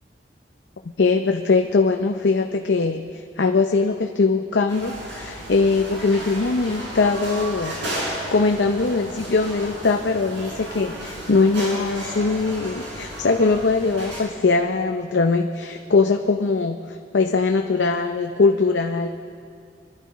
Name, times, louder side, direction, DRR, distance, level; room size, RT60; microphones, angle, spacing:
voice 1, 1.0-19.1, left 4 dB, 70° left, 4 dB, 0.6 m, -21 dB
sound 1, 4.7-14.2, right 1 dB, 80° right, 5.1 m, -33 dB
25.0 x 12.0 x 4.1 m, 2.4 s
head